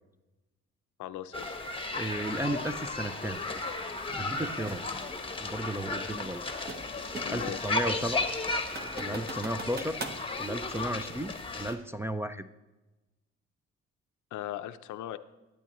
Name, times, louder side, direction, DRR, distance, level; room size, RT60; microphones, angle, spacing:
voice 1, 1.0-1.5 7.2-7.7 14.3-15.2, left 12 dB, 75° left, 12 dB, 0.6 m, -38 dB
sound 1, 1.3-11.7, left 3 dB, 15° left, 1.0 m, -34 dB
voice 2, 1.9-3.4 4.2-4.8 5.4-6.4 7.3-8.3 9.0-10.0 10.4-12.5, right 1 dB, 10° right, 7 dB, 0.4 m, -34 dB
sound 2, 4.7-4.9 6.2-7.5 7.9-8.0 8.5-10.2, right 3 dB, 35° right, 1.1 m, -41 dB
11.5 x 9.1 x 3.0 m, 1.1 s
cardioid pair, 90°, 30 cm